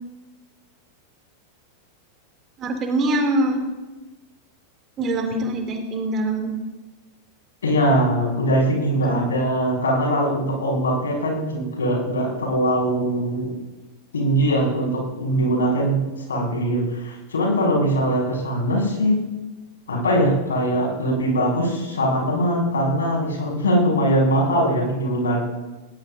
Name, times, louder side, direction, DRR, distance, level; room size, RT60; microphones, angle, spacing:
voice 1, 2.6-3.6 5.0-6.5 9.0-9.2, right 1 dB, 30° right, 2 dB, 3.3 m, -23 dB
voice 2, 7.6-13.5 14.1-16.0 16.3-19.2 19.9-25.4, equal, 70° left, -3 dB, 6.7 m, -21 dB
21.0 x 19.0 x 2.9 m, 1.1 s
figure-of-eight pair, 90°, 0 cm